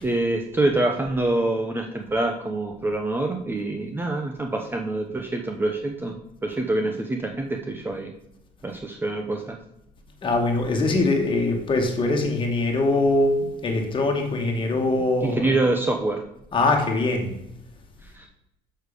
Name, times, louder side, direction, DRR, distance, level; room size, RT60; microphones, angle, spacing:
voice 1, 0.0-8.1 8.6-9.6 14.7-14.8 15.2-16.2 18.2-18.3, right 2 dB, 15° right, 3 dB, 0.8 m, -26 dB
voice 2, 10.2-15.6 16.5-17.3, left 2 dB, 30° left, 2 dB, 1.9 m, -22 dB
6.6 x 6.5 x 5.1 m, 0.83 s
cardioid pair, 115°, 16 cm